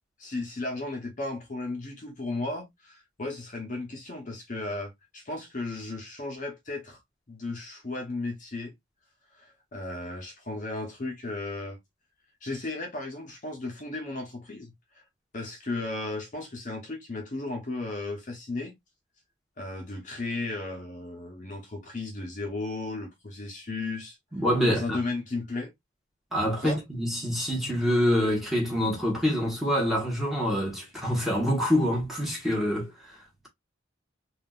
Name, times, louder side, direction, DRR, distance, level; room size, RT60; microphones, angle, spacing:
voice 1, 0.2-7.0 7.3-8.7 9.3-11.8 12.4-15.0 15.3-18.8 19.6-24.2 24.7-25.7 26.6-26.8, left 2 dB, 40° left, 0.7 m, -35 dB
voice 2, 24.3-25.0 26.3-33.5, equal, ahead, 1.2 m, -26 dB
3.5 x 2.4 x 2.3 m
head